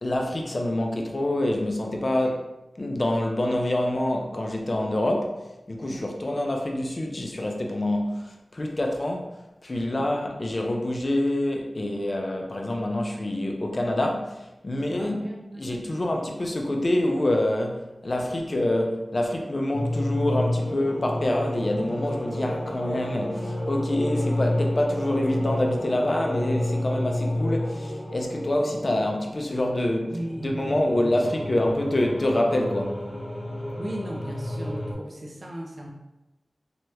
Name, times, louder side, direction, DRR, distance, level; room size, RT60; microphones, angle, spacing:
voice 1, 0.0-2.5 2.8-9.3 9.6-15.2 15.6-30.1 30.4-33.1, left 1 dB, 45° left, 2 dB, 0.4 m, -26 dB
voice 2, 14.9-15.7 30.1-31.3 33.8-35.9, equal, 45° right, -1 dB, 0.4 m, -36 dB
sound 1, 19.7-34.9, left 1 dB, 15° left, 1.1 m, -30 dB
2.8 x 2.3 x 3.2 m, 0.99 s
wide cardioid pair, 75°, 0 cm